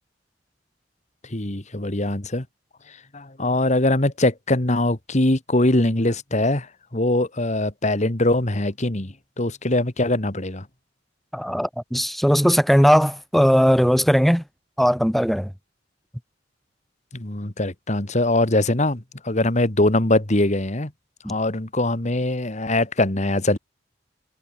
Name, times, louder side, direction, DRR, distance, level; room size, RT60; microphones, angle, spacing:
voice 1, 1.3-2.5 3.1-6.7 6.9-10.6 17.1-20.9 21.3-23.6, left 1 dB, 40° left, 2.1 m, -22 dB
voice 2, 11.3-14.4 14.8-15.5 21.2-21.3, equal, ahead, 7.4 m, -18 dB
head